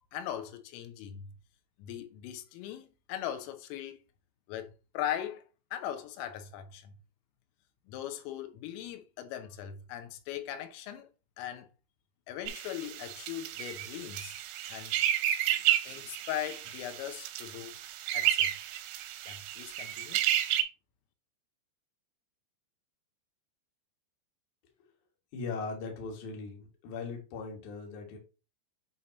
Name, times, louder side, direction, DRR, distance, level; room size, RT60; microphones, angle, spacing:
voice 1, 0.1-1.3 1.8-4.0 4.5-5.4 5.7-6.9 7.9-11.1 11.4-11.7 12.3-14.4 14.7-15.0 15.9-17.8 18.1-18.5 19.3-20.2, left 11 dB, 90° left, 3.5 m, -39 dB
sound 1, 12.5-20.6, right 12 dB, 80° right, 3.0 m, -32 dB
voice 2, 25.3-28.2, left 4 dB, 60° left, 2.1 m, -39 dB
8.4 x 2.9 x 4.0 m
omnidirectional pair, 5.7 m